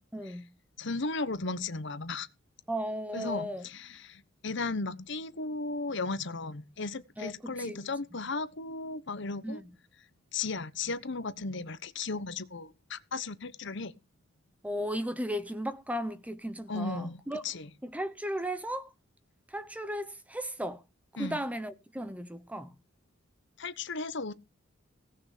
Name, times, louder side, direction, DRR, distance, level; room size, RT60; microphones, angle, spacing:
voice 1, 0.1-0.5 2.7-3.7 7.2-7.8 9.4-9.7 14.6-17.4 17.8-18.9 19.5-20.8 21.2-22.8, equal, 5° right, 0.9 m, -35 dB
voice 2, 0.8-2.3 3.1-9.6 10.3-13.9 16.7-17.7 21.2-21.4 23.6-24.3, left 3 dB, 60° left, 1.1 m, -35 dB
17.5 x 6.5 x 6.6 m
head